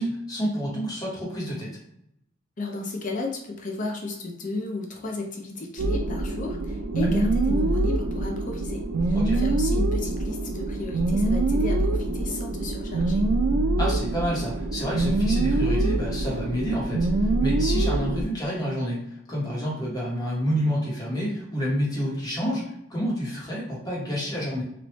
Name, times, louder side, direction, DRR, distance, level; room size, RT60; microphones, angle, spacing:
voice 1, 0.0-1.7 7.0-7.1 9.1-9.4 13.8-19.0 19.3-24.6, equal, 20° left, -5 dB, 1.2 m, -29 dB
voice 2, 2.6-13.2, left 2 dB, 40° left, 2 dB, 0.5 m, -34 dB
sound 1, 5.8-18.2, right 2 dB, 70° right, 0.4 m, -24 dB
3.3 x 2.5 x 3.0 m, 0.78 s
head